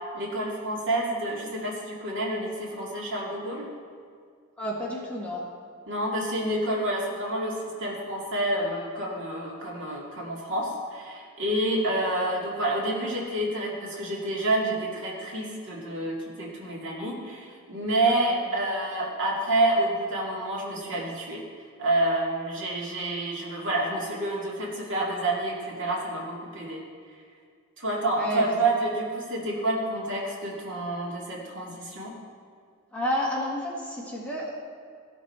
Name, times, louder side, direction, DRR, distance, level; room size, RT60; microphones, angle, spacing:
voice 1, 0.0-3.7 5.9-7.5 7.8-21.4 21.8-26.8 27.8-32.1, right 1 dB, 60° right, -3 dB, 2.2 m, -28 dB
voice 2, 4.6-5.4 18.0-18.4 28.1-28.5 32.9-34.5, equal, 5° left, -4 dB, 1.6 m, -30 dB
16.0 x 6.2 x 4.3 m, 2.1 s
head